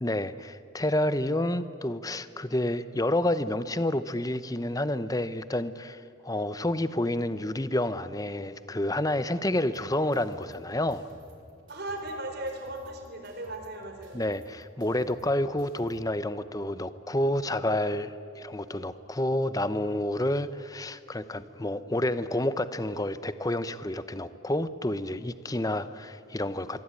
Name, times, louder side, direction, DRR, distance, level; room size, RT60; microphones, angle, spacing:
voice 1, 0.0-11.1 14.1-26.8, left 1 dB, 15° left, 13 dB, 0.8 m, -29 dB
sound 1, 9.7-16.0, equal, 65° right, 4.8 m, -55 dB
voice 2, 11.7-14.2, right 1 dB, 50° right, 5 dB, 4.5 m, -37 dB
25.5 x 23.5 x 9.8 m, 2.5 s
head